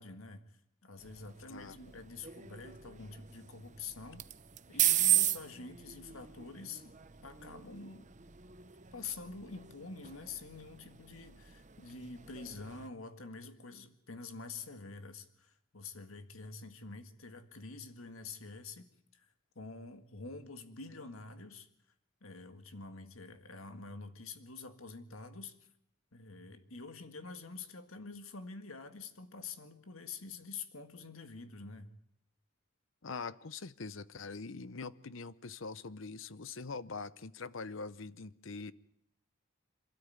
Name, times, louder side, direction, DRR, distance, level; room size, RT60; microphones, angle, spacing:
voice 1, 0.0-4.3 4.7-8.1 8.9-18.9 19.1-19.3 19.6-21.7 22.2-25.6 26.1-31.9, left 4 dB, 85° left, 1.8 m, -47 dB
sound 1, 1.0-12.9, right 12 dB, 35° right, 0.8 m, -37 dB
voice 2, 33.0-38.7, left 4 dB, 70° left, 0.8 m, -43 dB
27.5 x 13.0 x 9.3 m
head